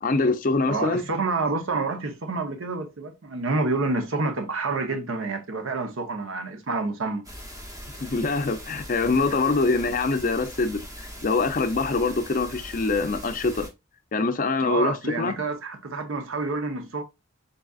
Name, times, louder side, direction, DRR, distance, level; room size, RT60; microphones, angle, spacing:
voice 1, 0.0-1.0 8.0-13.7 14.1-15.4, left 3 dB, 40° left, 0.4 m, -24 dB
voice 2, 0.7-7.2 14.6-17.0, right 3 dB, 70° right, 0.8 m, -28 dB
sound 1, 7.2-13.7, equal, 15° right, 0.9 m, -41 dB
4.1 x 3.8 x 2.3 m
head